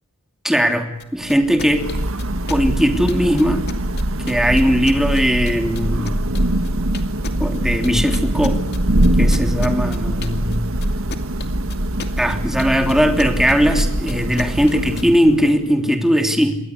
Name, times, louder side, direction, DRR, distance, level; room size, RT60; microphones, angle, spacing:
voice 1, 0.4-1.9 2.5-3.7 4.3-6.1 7.4-8.6 9.2-10.6 12.2-16.6, equal, ahead, 5 dB, 3.0 m, -18 dB
sound 1, 1.0-15.0, left 3 dB, 50° left, 2.6 m, -33 dB
Thunder / Rain, 1.3-15.6, right 1 dB, 75° right, 1.8 m, -22 dB
28.0 x 23.0 x 8.2 m, 0.82 s
head